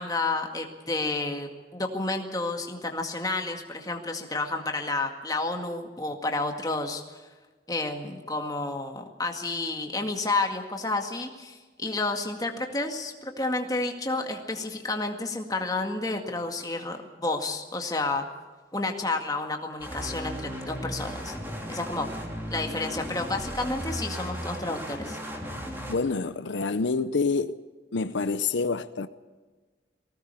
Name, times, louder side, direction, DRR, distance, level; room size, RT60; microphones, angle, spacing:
voice 1, 0.0-7.0 7.7-18.3 18.7-21.3 21.7-22.1 22.5-25.2, left 2 dB, 20° left, 2.0 m, -30 dB
sound 1, 19.8-25.9, equal, 10° right, 3.1 m, -36 dB
voice 2, 25.9-27.6 27.9-29.1, left 4 dB, 80° left, 0.7 m, -27 dB
19.5 x 17.5 x 8.3 m
head